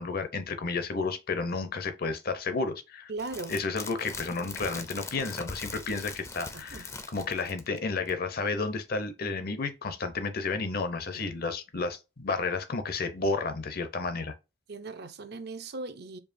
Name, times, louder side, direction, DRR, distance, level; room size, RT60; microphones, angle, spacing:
voice 1, 0.0-3.1 3.5-14.3, left 4 dB, 55° left, 0.7 m, -32 dB
voice 2, 3.1-3.6 6.5-6.9 11.1-11.2 14.7-16.2, right 3 dB, 60° right, 0.6 m, -38 dB
sound 1, 3.2-7.8 8.1-8.2, left 3 dB, 15° left, 0.4 m, -41 dB
4.7 x 2.7 x 2.6 m
head